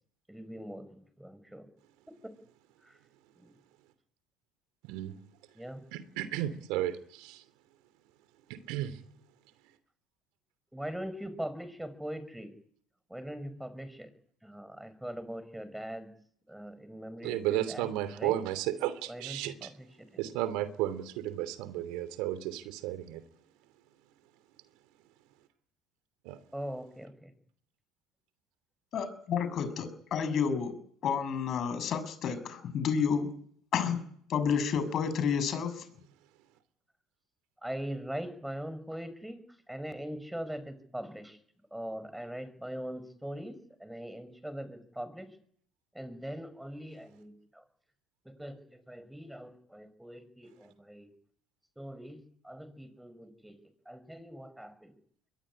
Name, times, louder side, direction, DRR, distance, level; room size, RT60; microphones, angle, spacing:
voice 1, 0.3-1.7 2.2-2.3 2.9-3.0 3.4-3.5 5.6-5.8 10.7-12.5 13.1-14.1 14.4-16.1 16.5-18.4 19.1-20.2 26.5-27.3 37.6-41.4 41.7-45.3 45.9-47.6 48.3-51.1 51.8-52.2 52.4-53.6 53.9-54.9, equal, 5° right, 14 dB, 5.7 m, -41 dB
voice 2, 5.9-7.4 8.7-8.9 17.2-19.7 20.2-23.2 26.3-26.4, right 13 dB, 70° right, 13 dB, 2.9 m, -33 dB
voice 3, 28.9-30.8 31.0-33.3 33.7-34.0 34.3-35.9, left 7 dB, 50° left, 12 dB, 6.8 m, -30 dB
23.0 x 20.0 x 9.9 m, 0.62 s
hypercardioid pair, 75°, 0 cm